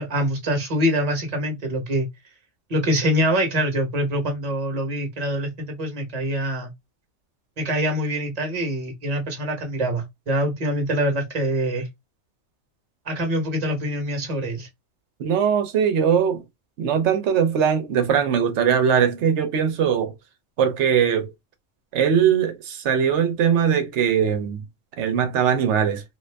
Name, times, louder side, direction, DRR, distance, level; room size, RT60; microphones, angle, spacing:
voice 1, 0.0-2.1 2.7-6.7 7.6-11.9 13.0-14.7, equal, 35° right, 0.9 m, -24 dB
voice 2, 15.2-16.4 16.8-20.1 20.6-21.3 21.9-24.6 25.0-26.0, right 8 dB, 60° right, 0.9 m, -20 dB
2.6 x 2.5 x 3.3 m
omnidirectional pair, 1.5 m